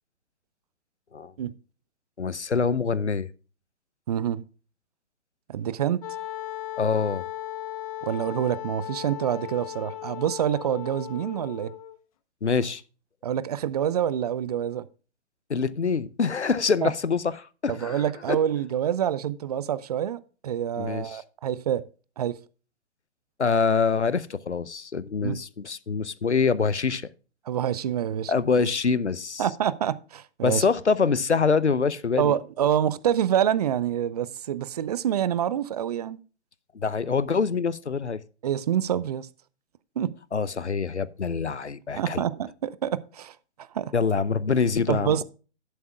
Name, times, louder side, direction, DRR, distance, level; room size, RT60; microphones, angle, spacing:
voice 1, 2.2-3.3 6.8-7.2 12.4-12.8 15.5-18.4 20.8-21.2 23.4-27.1 28.3-29.4 30.4-32.3 36.7-38.2 40.3-42.2 43.9-45.2, left 5 dB, 85° left, 0.7 m, -25 dB
voice 2, 4.1-4.4 5.5-6.0 8.0-11.7 13.2-14.8 16.8-16.9 17.7-21.8 22.2-22.4 25.2-25.4 27.5-28.3 29.4-30.6 32.2-36.2 38.4-39.3 40.0-40.1 42.0-43.4 43.7-43.9 44.9-45.2, right 10 dB, 35° right, 0.6 m, -27 dB
Wind instrument woodwind instrument, 6.0-12.0, left 13 dB, 30° left, 0.8 m, -37 dB
11.5 x 10.5 x 2.3 m
figure-of-eight pair, 125°, 33 cm